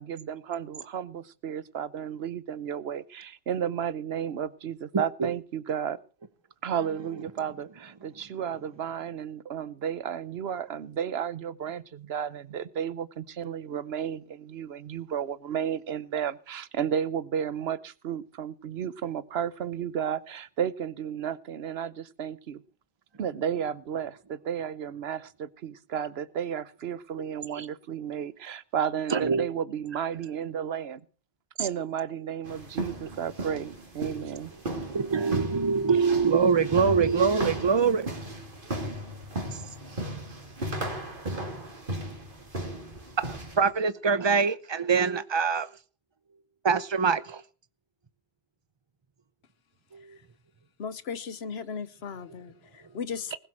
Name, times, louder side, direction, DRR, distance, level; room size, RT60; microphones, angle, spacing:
voice 1, 0.0-6.0 6.6-22.6 23.2-31.0 31.6-34.5, right 8 dB, 80° right, 18 dB, 1.1 m, -33 dB
voice 2, 29.1-29.5 31.6-31.7 34.9-38.1 43.2-45.7 46.6-47.4 49.9-50.0, right 5 dB, 30° right, 15 dB, 0.8 m, -24 dB
sound 1, 32.4-43.7, right 1 dB, 55° right, 3.0 m, -36 dB
voice 3, 50.8-53.4, left 6 dB, 85° left, 16 dB, 1.2 m, -36 dB
20.0 x 7.6 x 6.1 m, 0.38 s
omnidirectional pair, 1.0 m